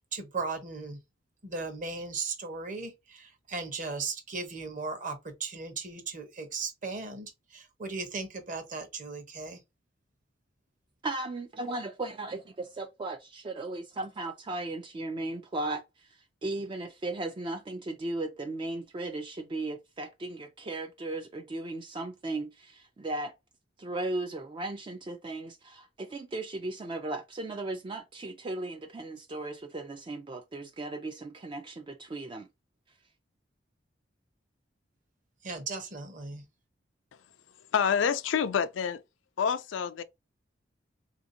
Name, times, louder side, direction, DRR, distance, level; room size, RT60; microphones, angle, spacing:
voice 1, 0.1-1.0 1.4-9.6 35.4-36.4, right 4 dB, 45° right, 0.9 m, -37 dB
voice 2, 11.0-16.1 16.4-23.3 23.8-32.5, right 2 dB, 25° right, 0.3 m, -36 dB
voice 3, 37.7-39.0 39.4-40.0, left 7 dB, 80° left, 0.4 m, -27 dB
3.4 x 2.6 x 2.6 m
head